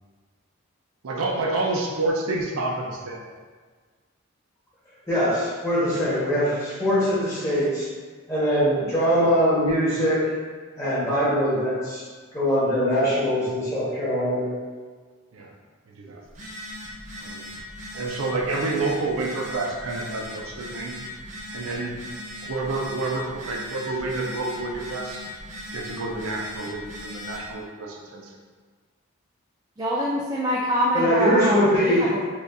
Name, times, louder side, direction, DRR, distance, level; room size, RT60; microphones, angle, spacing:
voice 1, 1.0-3.3 15.3-15.5 15.9-16.2 17.2-17.4 17.9-20.9 21.5-21.9 22.5-25.2 25.7-28.3, right 2 dB, 85° right, -1 dB, 0.6 m, -29 dB
voice 2, 5.1-7.9 8.3-10.3 10.8-12.0 12.3-14.5 30.9-32.1, equal, 15° left, -10 dB, 1.2 m, -22 dB
Telephone, 16.2-27.5, left 1 dB, 35° right, 0.8 m, -38 dB
voice 3, 29.8-32.3, equal, 20° right, -5 dB, 0.3 m, -25 dB
4.3 x 2.4 x 2.6 m, 1.5 s
head